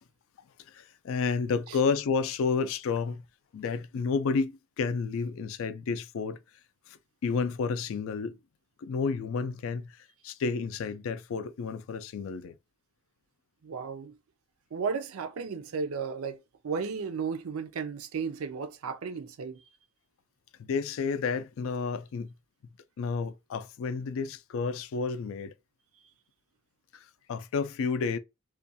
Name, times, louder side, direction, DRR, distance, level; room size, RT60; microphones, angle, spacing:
voice 1, 0.7-3.2 3.5-6.4 6.9-7.0 7.2-8.4 8.8-12.6 20.6-22.3 23.0-25.5 26.9-28.2, left 5 dB, 65° left, 0.3 m, -31 dB
voice 2, 13.6-14.1 14.7-16.4 16.6-19.6, right 5 dB, 80° right, 0.4 m, -34 dB
2.4 x 2.2 x 2.6 m
head